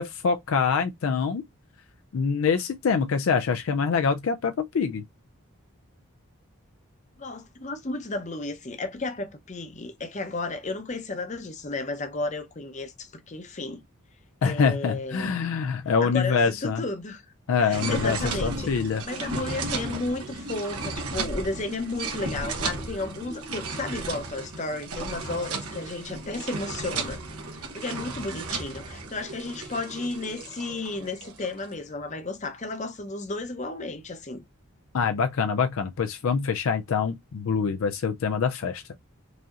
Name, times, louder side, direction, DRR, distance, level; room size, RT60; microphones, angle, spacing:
voice 1, 0.0-1.4 2.1-5.0 14.4-16.8 17.5-19.0 34.9-38.8, left 5 dB, 65° left, 0.4 m, -25 dB
voice 2, 7.2-13.8 14.4-15.3 16.0-17.2 17.6-18.7 19.0-27.2 27.5-34.4, left 2 dB, 35° left, 0.7 m, -33 dB
sound 1, 17.7-31.7, right 3 dB, 90° right, 1.2 m, -34 dB
4.9 x 2.7 x 2.4 m
head